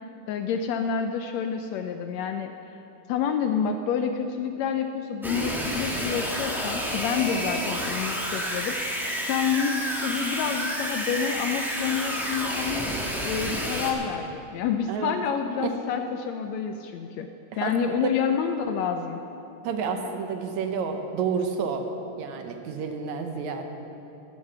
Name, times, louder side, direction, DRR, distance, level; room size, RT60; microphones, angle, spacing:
voice 1, 0.3-2.5 3.1-9.0 9.3-12.9 13.2-17.3 17.6-19.2, left 7 dB, 80° left, 6 dB, 1.6 m, -28 dB
sound 1, 5.2-13.9, equal, ahead, 0.7 m, -30 dB
voice 2, 19.6-21.9 22.2-23.6, right 6 dB, 75° right, 5 dB, 2.2 m, -30 dB
13.0 x 10.5 x 6.8 m, 2.8 s
omnidirectional pair, 3.5 m